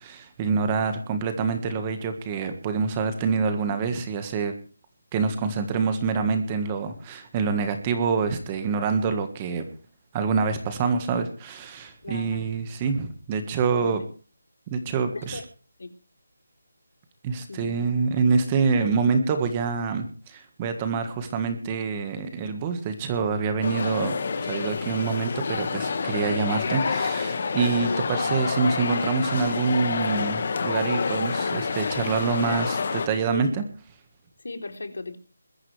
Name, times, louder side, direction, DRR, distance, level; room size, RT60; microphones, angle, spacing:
voice 1, 0.0-4.5 5.1-9.6 10.1-14.0 14.7-15.4 17.2-24.1 24.4-33.6, right 5 dB, 15° right, 8 dB, 1.6 m, -26 dB
voice 2, 12.0-12.4 13.8-13.9 15.1-15.4 15.8-15.9 17.5-17.7 27.8-28.1 33.3-33.4 34.4-35.2, left 3 dB, 75° left, 6 dB, 3.6 m, -35 dB
sound 1, 23.6-33.1, left 5 dB, 35° left, 1.7 m, -28 dB
22.0 x 14.0 x 3.4 m, 0.37 s
figure-of-eight pair, 175°, 0 cm